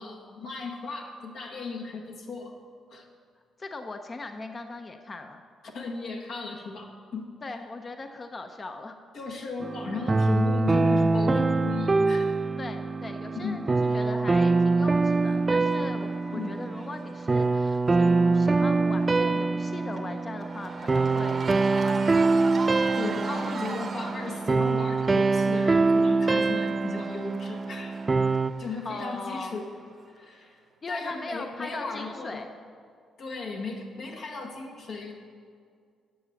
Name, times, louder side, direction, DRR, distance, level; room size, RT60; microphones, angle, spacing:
voice 1, 0.0-2.6 2.9-3.1 5.6-7.6 9.1-12.4 13.3-14.0 16.3-16.6 23.0-27.9 28.6-29.7 30.1-30.6 30.9-32.4 33.2-35.1, left 4 dB, 70° left, -1 dB, 1.4 m, -36 dB
voice 2, 3.6-5.4 7.4-9.0 12.6-22.2 28.8-29.6 30.8-32.5, left 3 dB, 30° left, 6 dB, 0.6 m, -39 dB
sound 1, 9.6-28.5, right 3 dB, 25° right, 0.3 m, -24 dB
Cheering / Crowd, 14.9-30.2, right 4 dB, 40° right, 0.9 m, -41 dB
8.5 x 6.7 x 7.1 m, 2.2 s
cardioid pair, 90°, 0 cm